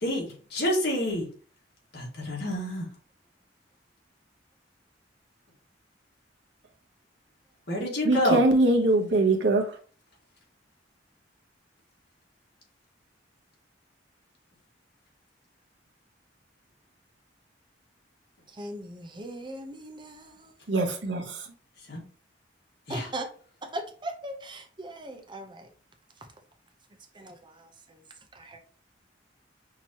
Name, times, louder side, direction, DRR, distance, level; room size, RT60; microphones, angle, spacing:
voice 1, 0.0-1.3 1.9-2.9 7.7-8.4 21.9-22.0 22.9-23.1, left 1 dB, 60° left, 1.8 m, -28 dB
voice 2, 8.0-9.8 20.7-21.5, right 2 dB, 75° right, 1.0 m, -23 dB
voice 3, 18.5-20.6 22.9-23.3 23.6-25.7 26.2-26.3 27.1-28.0 28.3-28.6, right 1 dB, 25° right, 0.7 m, -39 dB
5.9 x 2.9 x 2.9 m
head